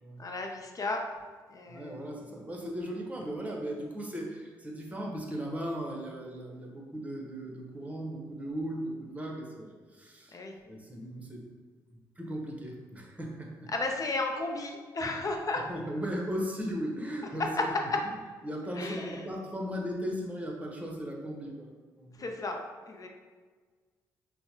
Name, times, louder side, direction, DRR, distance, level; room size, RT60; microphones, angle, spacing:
voice 1, 0.2-1.0 1.5-1.9 10.3-10.5 13.7-15.6 18.7-19.2 22.1-22.6 22.9-23.1, left 2 dB, 35° left, 2 dB, 0.7 m, -34 dB
voice 2, 1.7-10.4 10.6-11.4 11.9-13.7 15.6-17.7 18.4-21.7 22.0-22.3, equal, 15° right, 0 dB, 1.0 m, -37 dB
5.5 x 2.2 x 2.8 m, 1.5 s
hypercardioid pair, 45°, 10 cm